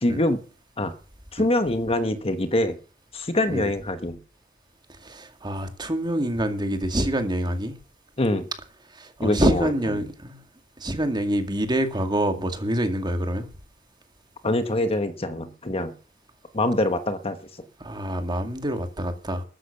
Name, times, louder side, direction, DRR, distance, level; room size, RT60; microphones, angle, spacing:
voice 1, 0.0-0.4 0.8-0.9 1.3-2.8 3.1-4.2 8.2-8.5 9.2-9.7 10.0-10.1 14.4-15.9 16.5-17.6, left 1 dB, 30° left, 1.2 m, -24 dB
voice 2, 5.0-7.7 8.9-10.4 10.8-13.5 17.8-19.4, right 1 dB, 20° right, 2.1 m, -26 dB
14.0 x 10.0 x 6.6 m
head